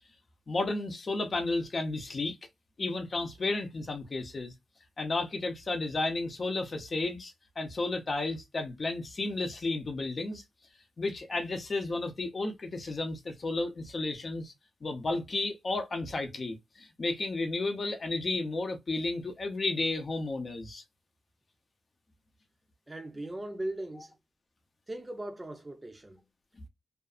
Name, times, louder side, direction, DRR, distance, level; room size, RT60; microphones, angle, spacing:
voice 1, 0.5-2.4 2.8-4.5 5.0-10.4 11.0-14.5 14.8-20.8, left 2 dB, 45° left, 0.7 m, -32 dB
voice 2, 22.9-24.1 24.9-26.2, right 1 dB, 20° right, 0.6 m, -39 dB
2.5 x 2.4 x 2.3 m
cardioid pair, 80°, 0 cm